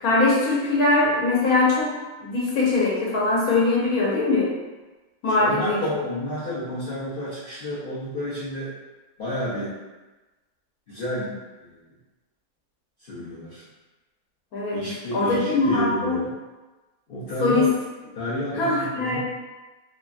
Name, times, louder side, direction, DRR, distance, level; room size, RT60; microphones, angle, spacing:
voice 1, 0.0-1.9 2.2-4.6 5.2-6.0 14.5-14.8 15.1-16.2 17.4-17.7 18.5-19.2, left 3 dB, 75° left, -5 dB, 1.2 m, -21 dB
voice 2, 5.4-8.7 9.2-9.7 10.9-11.9 13.0-13.7 14.7-16.3 17.1-17.7 18.1-19.2, equal, 55° left, -10 dB, 0.6 m, -30 dB
2.9 x 2.5 x 2.3 m, 1.2 s
omnidirectional pair, 1.6 m